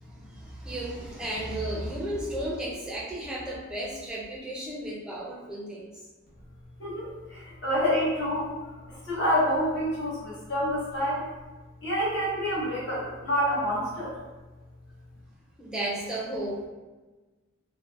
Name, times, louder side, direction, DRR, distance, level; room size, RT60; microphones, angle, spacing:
voice 1, 0.0-5.9 15.6-16.7, right 1 dB, 5° right, -5 dB, 0.4 m, -34 dB
voice 2, 6.8-8.5 8.9-11.2 11.8-14.1, equal, 55° left, -8 dB, 1.1 m, -27 dB
2.7 x 2.1 x 2.4 m, 1.2 s
head